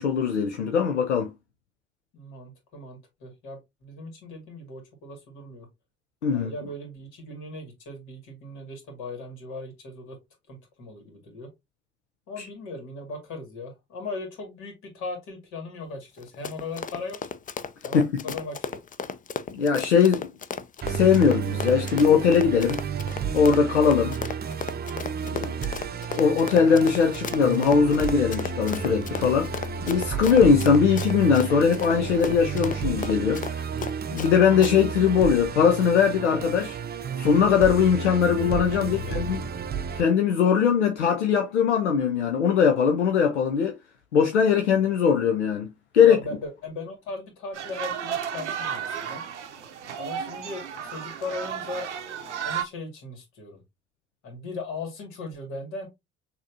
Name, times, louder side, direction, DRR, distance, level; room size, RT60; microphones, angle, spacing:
voice 1, 0.0-1.3 6.2-6.5 12.4-12.5 17.9-18.1 19.5-20.3 20.9-22.8 23.3-24.2 25.2-25.5 26.2-29.6 29.9-33.6 34.1-36.8 37.2-39.4 39.9-43.8 44.1-46.2, left 6 dB, 85° left, 0.6 m, -21 dB
voice 2, 2.1-5.7 6.3-10.2 10.5-11.5 12.3-17.2 17.8-18.8 38.8-39.4 46.0-49.2 49.9-51.9 52.4-53.6 54.2-55.9, left 2 dB, 60° left, 2.1 m, -38 dB
Run, 16.2-34.3 34.6-34.7, left 6 dB, 25° left, 0.5 m, -35 dB
Musical instrument, 20.8-40.0, right 6 dB, 30° right, 0.6 m, -32 dB
sound 1, 47.5-52.6, right 8 dB, 85° right, 0.7 m, -33 dB
6.2 x 2.8 x 2.7 m
figure-of-eight pair, 50°, 34 cm